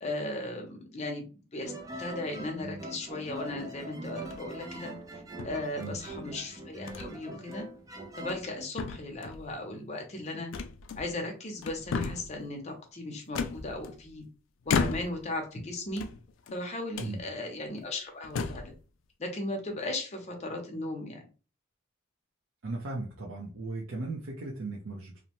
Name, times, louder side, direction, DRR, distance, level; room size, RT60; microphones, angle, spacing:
voice 1, 0.0-1.2 1.5-1.7 2.0-7.7 8.2-10.5 11.0-14.2 14.7-16.0 16.5-18.7 19.2-21.2, left 2 dB, 35° left, 3 dB, 0.6 m, -37 dB
sound 1, 1.6-8.7, right 1 dB, 15° right, 0.4 m, -42 dB
sound 2, 4.2-4.6 5.4-6.1 6.9-7.1 7.5-7.6 8.1-8.5 8.8-9.5 10.5-11.3 11.6-12.4 13.3-14.2 14.7-15.3 15.9-16.6 16.9-17.2 17.8-17.9 18.2-18.7, left 5 dB, 70° left, 0.3 m, -34 dB
voice 2, 22.6-25.2, right 2 dB, 75° right, -2 dB, 0.6 m, -37 dB
2.6 x 2.1 x 2.9 m, 0.35 s
head